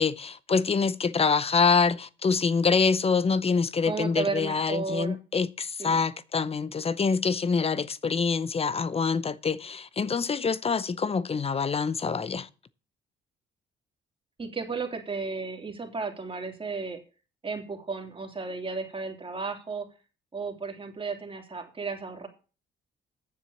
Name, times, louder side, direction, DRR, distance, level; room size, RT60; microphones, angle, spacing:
voice 1, 0.0-12.5, left 5 dB, 30° left, 0.7 m, -25 dB
voice 2, 3.8-5.2 5.8-6.0 14.4-17.0 17.4-19.9 20.3-22.3, right 4 dB, 25° right, 3.0 m, -33 dB
9.8 x 7.3 x 7.1 m
cardioid pair, 90°, 20 cm